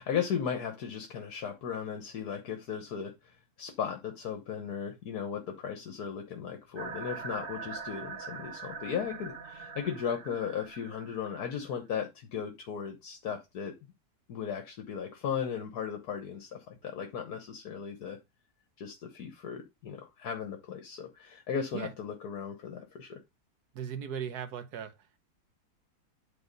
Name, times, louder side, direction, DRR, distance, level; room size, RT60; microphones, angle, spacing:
voice 1, 0.0-13.7 14.3-18.2 18.8-23.2, left 7 dB, 70° left, 1.5 m, -36 dB
sound 1, 6.7-11.8, right 5 dB, 40° right, 0.9 m, -43 dB
voice 2, 23.7-25.0, right 8 dB, 70° right, 1.5 m, -37 dB
9.6 x 3.9 x 5.2 m
omnidirectional pair, 1.8 m